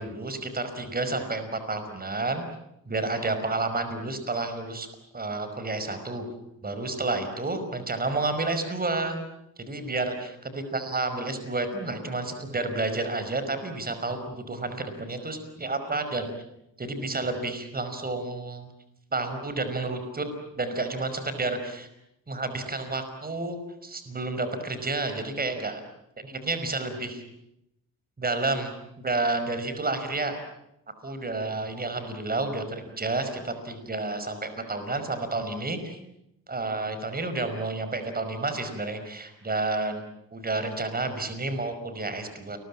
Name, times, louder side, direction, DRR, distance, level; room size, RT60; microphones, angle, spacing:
voice 1, 0.0-2.4 2.9-4.9 5.1-6.3 6.6-9.2 9.6-16.3 16.8-18.7 19.1-20.3 20.6-21.9 22.3-25.8 26.2-27.2 28.2-30.4 31.0-36.0 36.5-40.0 40.3-42.6, right 3 dB, 25° right, 9 dB, 5.4 m, -30 dB
29.5 x 22.0 x 8.8 m, 0.83 s
cardioid pair, 100°, 34 cm